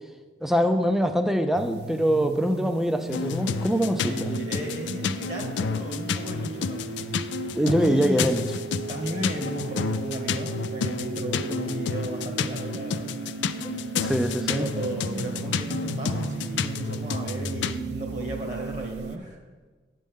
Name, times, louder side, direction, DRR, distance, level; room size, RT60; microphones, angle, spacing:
voice 1, 0.4-4.3 7.6-8.5 13.6-13.7 14.0-14.7, equal, ahead, 7 dB, 0.4 m, -24 dB
sound 1, 1.5-19.2, right 4 dB, 65° right, 0.4 m, -36 dB
sound 2, 3.1-17.8, left 6 dB, 85° left, 0.3 m, -31 dB
voice 2, 4.0-7.0 7.7-8.4 8.9-13.1 14.5-19.4, right 1 dB, 40° right, 1 dB, 1.1 m, -34 dB
9.4 x 7.6 x 3.6 m, 1.4 s
head